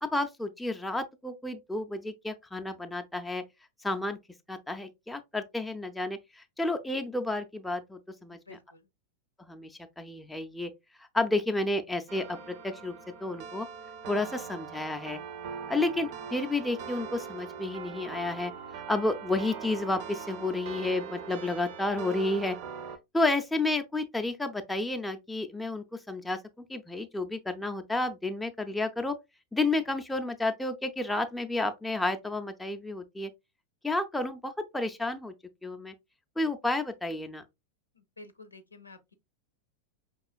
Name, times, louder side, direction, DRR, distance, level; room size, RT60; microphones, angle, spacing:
voice 1, 0.0-3.4 3.8-4.2 4.5-8.6 9.4-10.7 11.1-12.9 13.2-13.7 14.1-15.2 15.7-22.6 23.1-29.2 29.5-33.3 33.8-35.3 35.6-35.9 36.4-37.4, left 2 dB, 5° left, 0.5 m, -31 dB
voice 2, 8.3-8.8 38.0-39.1, left 2 dB, 80° left, 0.6 m, -51 dB
sound 1, 12.1-23.0, right 7 dB, 45° right, 0.5 m, -41 dB
5.4 x 3.0 x 2.3 m
figure-of-eight pair, 90°, 0 cm